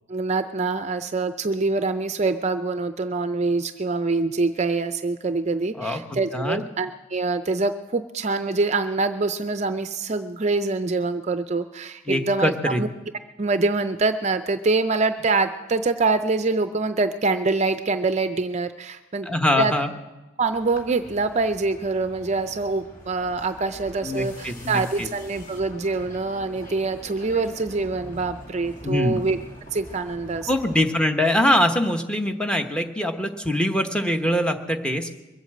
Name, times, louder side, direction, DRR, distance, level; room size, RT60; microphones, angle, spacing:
voice 1, 0.1-12.9 13.4-19.3 19.6-19.7 20.4-29.4 29.7-30.5, right 3 dB, 35° right, 10 dB, 0.5 m, -25 dB
voice 2, 12.1-12.8 19.3-19.9 24.0-25.1 28.8-29.2 30.5-35.1, left 1 dB, 5° left, 5 dB, 1.0 m, -23 dB
sound 1, 20.5-30.9, equal, 40° left, 2.3 m, -44 dB
22.5 x 8.2 x 7.6 m, 1.1 s
head